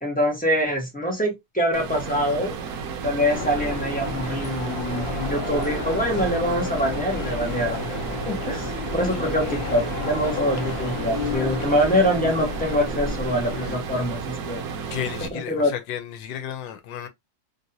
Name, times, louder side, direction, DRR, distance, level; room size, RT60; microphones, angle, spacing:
voice 1, 0.0-2.6 3.0-7.9 8.3-14.6 15.3-15.7, equal, 5° left, 0.7 m, -24 dB
sound 1, 1.7-15.3, right 5 dB, 70° right, 0.9 m, -33 dB
sound 2, 3.3-13.8, left 3 dB, 60° left, 0.7 m, -31 dB
voice 2, 14.8-17.1, left 9 dB, 85° left, 1.3 m, -33 dB
3.1 x 2.7 x 2.7 m
omnidirectional pair, 2.0 m